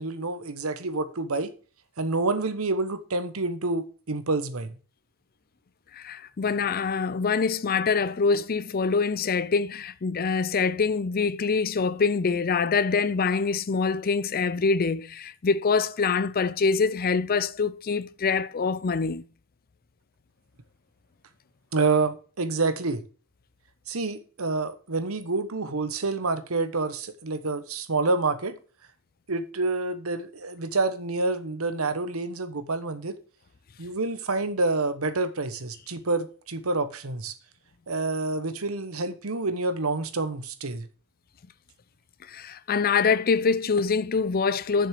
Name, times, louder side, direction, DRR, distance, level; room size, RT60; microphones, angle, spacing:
voice 1, 0.0-1.5 2.0-4.7 21.7-23.0 23.9-28.6 29.3-33.1 33.8-37.3 37.9-40.9, right 3 dB, 80° right, 1.1 m, -28 dB
voice 2, 5.9-19.2 42.3-44.9, left 5 dB, 45° left, 0.5 m, -25 dB
7.0 x 6.1 x 7.6 m
head